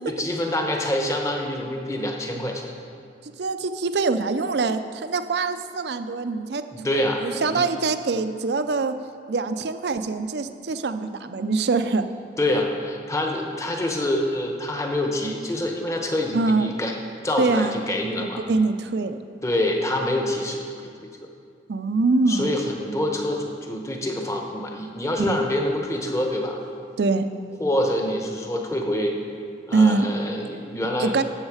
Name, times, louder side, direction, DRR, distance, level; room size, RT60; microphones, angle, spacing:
voice 1, 0.1-2.7 6.7-7.7 12.4-16.9 17.2-18.4 19.4-20.6 21.0-21.1 22.3-26.6 27.6-29.1 29.7-31.2, left 1 dB, 15° left, 2 dB, 0.9 m, -26 dB
voice 2, 3.4-6.6 7.2-8.9 9.3-12.0 12.5-12.6 16.3-16.7 17.4-17.8 18.2-19.2 21.7-22.5 25.3-25.4 27.0-27.3 29.7-30.1 31.0-31.2, right 3 dB, 70° right, 10 dB, 0.5 m, -23 dB
12.5 x 7.4 x 4.9 m, 2.3 s
head